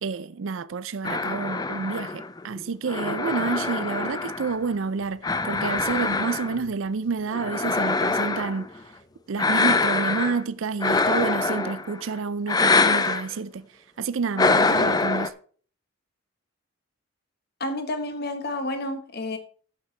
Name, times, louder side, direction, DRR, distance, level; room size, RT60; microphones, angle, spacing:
voice 1, 0.0-8.7 9.3-13.7 14.0-15.3, right 4 dB, 65° right, 0.5 m, -29 dB
sound 1, 1.0-4.7 5.2-6.7 7.3-8.7 9.4-10.4 10.8-12.0 12.5-13.3 14.4-15.3, left 3 dB, 20° left, 0.4 m, -24 dB
voice 2, 17.6-19.4, left 1 dB, 50° left, 1.4 m, -30 dB
11.0 x 8.6 x 3.3 m
head